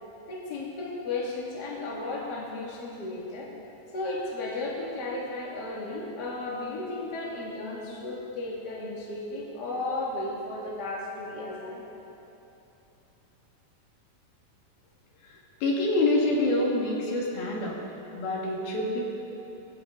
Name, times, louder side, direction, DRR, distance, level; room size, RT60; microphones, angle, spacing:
voice 1, 0.3-3.5 3.9-11.8, left 2 dB, 30° left, -4 dB, 2.4 m, -34 dB
voice 2, 15.6-17.8 18.1-19.0, left 2 dB, 90° left, -2 dB, 3.9 m, -26 dB
20.0 x 15.5 x 3.9 m, 3.0 s
omnidirectional pair, 4.2 m